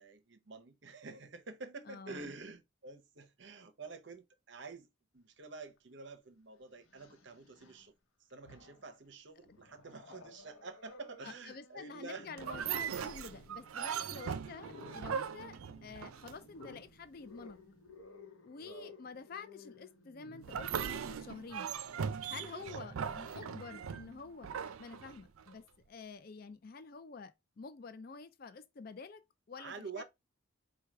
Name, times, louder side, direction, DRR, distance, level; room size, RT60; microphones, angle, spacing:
voice 1, 0.0-7.9 8.3-12.3 13.8-14.4 18.6-18.9 22.7-23.5 29.6-30.0, right 3 dB, 55° right, 0.8 m, -49 dB
voice 2, 1.9-2.2 9.5-9.6 11.2-17.6 18.4-21.8 22.3-24.5 24.8-29.2 29.5-30.0, left 4 dB, 45° left, 0.4 m, -49 dB
Growling, 5.8-5.9 6.8-7.9 8.3-9.0 9.4-24.0, left 2 dB, 80° left, 0.9 m, -57 dB
sound 1, 12.4-16.7 20.4-25.5, right 7 dB, 90° right, 0.4 m, -39 dB
4.6 x 2.3 x 4.6 m
head